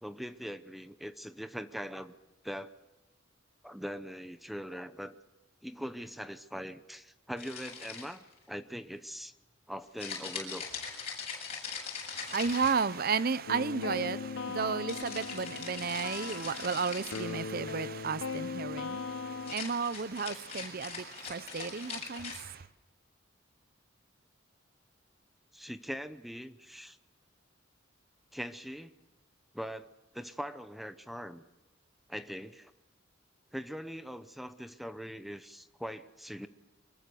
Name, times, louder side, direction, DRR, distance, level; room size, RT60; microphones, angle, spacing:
voice 1, 0.0-2.1 2.4-2.7 3.6-5.2 5.6-9.4 9.7-10.7 25.5-27.0 28.3-28.9 29.5-29.9 30.1-31.4 32.1-32.7 33.5-36.5, equal, ahead, 0.8 m, -41 dB
sound 1, 7.4-8.3 10.0-13.2 14.9-17.4 19.4-22.4, left 6 dB, 35° left, 7.7 m, -41 dB
voice 2, 12.1-22.6, right 5 dB, 50° right, 0.7 m, -33 dB
sound 2, 13.5-19.6, left 4 dB, 65° left, 0.7 m, -39 dB
25.0 x 21.5 x 6.9 m
head